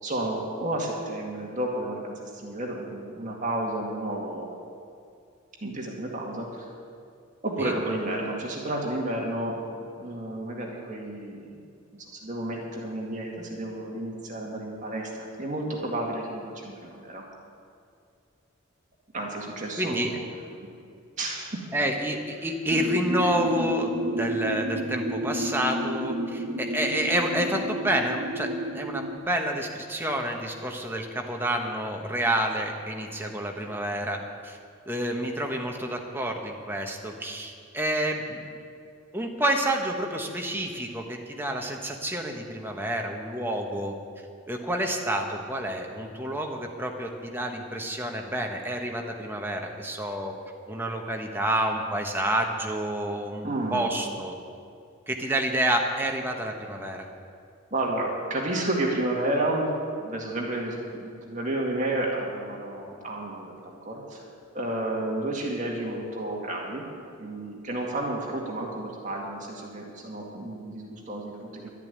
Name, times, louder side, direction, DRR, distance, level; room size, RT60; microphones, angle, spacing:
voice 1, 0.0-4.5 5.6-6.7 7.4-9.6 10.0-11.6 11.9-15.1 15.4-17.2 19.1-20.1 20.6-20.7 21.2-21.5 53.4-53.9 57.7-59.7 60.0-64.2 64.5-66.8 67.2-71.7, right 1 dB, 40° right, -1 dB, 2.1 m, -31 dB
voice 2, 19.8-20.1 21.7-23.9 24.2-34.2 34.4-34.6 34.9-38.4 39.1-43.9 44.5-50.3 50.7-54.4 55.1-57.1, right 1 dB, 10° right, 2 dB, 1.2 m, -29 dB
sound 1, 22.7-29.2, right 1 dB, 90° right, 1.3 m, -31 dB
12.0 x 10.5 x 9.3 m, 2.4 s
head